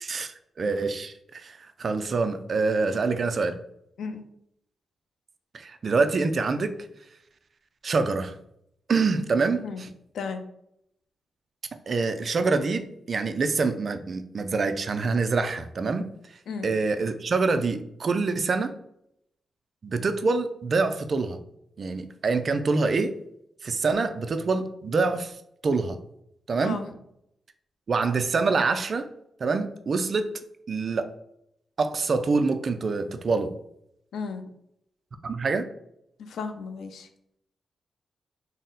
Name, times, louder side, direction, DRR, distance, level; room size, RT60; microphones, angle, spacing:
voice 1, 0.0-3.5 5.5-6.7 7.8-8.3 8.9-9.9 11.9-18.8 19.8-21.4 21.8-23.1 23.6-25.4 25.6-26.0 26.5-26.8 27.9-29.1 29.4-30.3 30.7-31.1 31.8-33.5 35.2-35.7, right 4 dB, 45° right, 8 dB, 0.3 m, -26 dB
voice 2, 34.1-34.4 36.3-37.1, left 5 dB, 85° left, 8 dB, 0.4 m, -34 dB
4.0 x 2.1 x 3.7 m, 0.76 s
wide cardioid pair, 130°, 0 cm